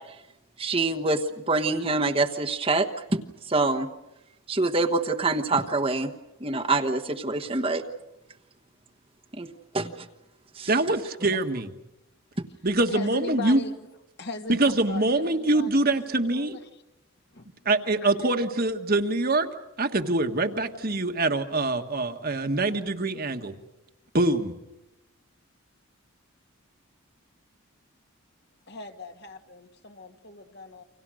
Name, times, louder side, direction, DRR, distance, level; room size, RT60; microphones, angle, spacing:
voice 1, 0.6-3.2 3.5-3.9 4.5-6.1 6.4-7.8 9.3-9.5 9.7-10.1 10.6-10.7, right 3 dB, 25° right, 4 dB, 1.2 m, -25 dB
voice 2, 10.7-11.7 12.6-13.6 14.5-16.6 17.6-19.5 19.8-23.5 24.1-24.5, right 2 dB, 40° right, 6 dB, 1.6 m, -24 dB
voice 3, 12.9-13.7 14.2-16.8 17.3-17.7 18.0-18.1 28.7-30.8, left 3 dB, 50° left, 6 dB, 2.0 m, -39 dB
29.5 x 26.0 x 6.4 m, 0.92 s
head